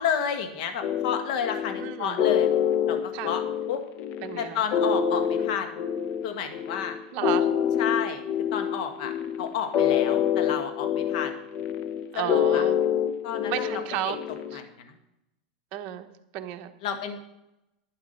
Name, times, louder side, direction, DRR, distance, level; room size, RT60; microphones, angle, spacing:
voice 1, 0.0-2.5 2.9-3.4 3.7-3.8 4.4-5.7 6.2-6.9 7.8-8.2 8.5-11.3 12.1-12.6 13.2-13.7 14.0-14.1 14.5-14.9 16.8-17.2, left 8 dB, 60° left, 7 dB, 1.5 m, -31 dB
sound 1, 0.8-14.6, left 9 dB, 40° left, 0.8 m, -26 dB
voice 2, 1.8-2.2 3.1-3.3 4.2-4.6 5.3-5.5 7.1-7.5 12.1-12.8 13.5-14.2 14.5-14.6 15.7-16.7, right 12 dB, 45° right, 6 dB, 1.1 m, -33 dB
11.5 x 9.5 x 5.3 m, 0.89 s
supercardioid pair, 135°, 4 cm